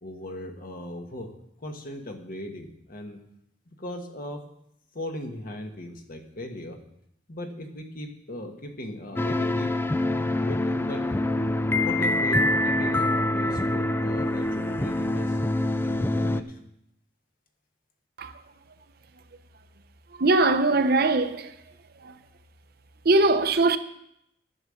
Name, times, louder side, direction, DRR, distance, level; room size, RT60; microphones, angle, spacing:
voice 1, 0.0-1.3 1.6-3.2 3.7-4.5 4.9-6.8 7.3-11.1 11.8-15.4 15.8-16.6, left 1 dB, 50° left, 1.5 m, -38 dB
sound 1, 9.2-16.4, left 1 dB, 10° left, 0.4 m, -25 dB
voice 2, 20.2-21.5 22.0-22.1 23.0-23.8, right 2 dB, 55° right, 0.8 m, -21 dB
10.5 x 8.5 x 6.5 m
head